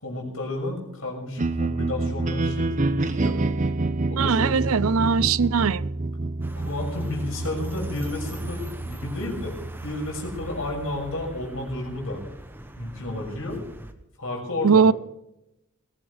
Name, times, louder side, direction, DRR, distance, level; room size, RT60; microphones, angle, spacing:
voice 1, 0.0-3.4 4.1-4.6 6.6-12.2 12.8-13.6 14.2-14.8, left 2 dB, 65° left, 6.3 m, -32 dB
sound 1, 1.4-11.5, right 2 dB, 35° right, 0.7 m, -28 dB
voice 2, 4.1-5.9 14.6-14.9, right 5 dB, 70° right, 0.5 m, -20 dB
sound 2, 6.4-13.9, right 1 dB, 10° right, 1.1 m, -42 dB
20.5 x 15.0 x 3.4 m
head